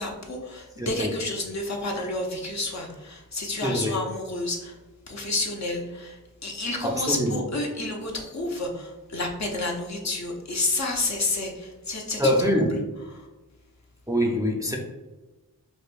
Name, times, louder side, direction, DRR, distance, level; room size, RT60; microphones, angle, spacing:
voice 1, 0.0-4.8 5.1-12.6 13.1-13.3, left 2 dB, 50° left, 0 dB, 0.7 m, -30 dB
voice 2, 0.8-1.1 3.6-4.0 6.8-7.3 12.2-12.8 14.1-14.8, equal, 10° right, -1 dB, 0.5 m, -24 dB
5.0 x 2.2 x 2.5 m, 1.1 s
wide cardioid pair, 65°, 35 cm